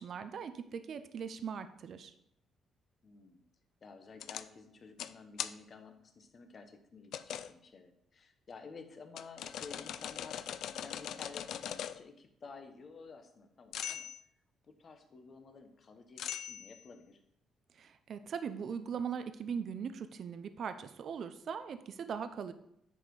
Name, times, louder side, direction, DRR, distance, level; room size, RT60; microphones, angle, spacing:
voice 1, 0.0-2.1 17.7-22.5, right 7 dB, 60° right, 11 dB, 0.6 m, -40 dB
voice 2, 3.0-3.4 3.8-14.1 14.8-17.2, left 4 dB, 45° left, 7 dB, 1.1 m, -52 dB
sound 1, 4.2-4.4 5.0-5.1 5.4-5.5 7.1-7.5 9.2-12.0 13.7-14.2 16.2-16.8, left 10 dB, 75° left, 0.4 m, -40 dB
9.9 x 4.3 x 4.8 m, 0.77 s
cardioid pair, 90°, 0 cm